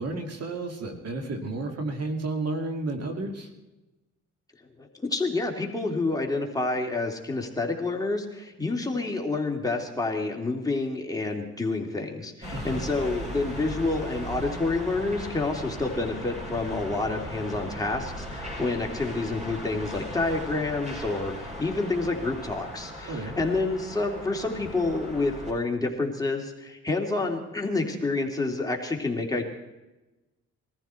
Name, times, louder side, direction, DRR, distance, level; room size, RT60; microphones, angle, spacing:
voice 1, 0.0-3.5 12.5-12.8 23.1-23.3, right 2 dB, 55° right, 4 dB, 2.3 m, -32 dB
voice 2, 4.8-29.4, left 3 dB, 10° left, 1 dB, 2.7 m, -28 dB
sound 1, 12.4-25.5, equal, 20° right, 6.0 m, -38 dB
21.5 x 14.5 x 4.5 m, 1.1 s
cardioid pair, 90°, 30 cm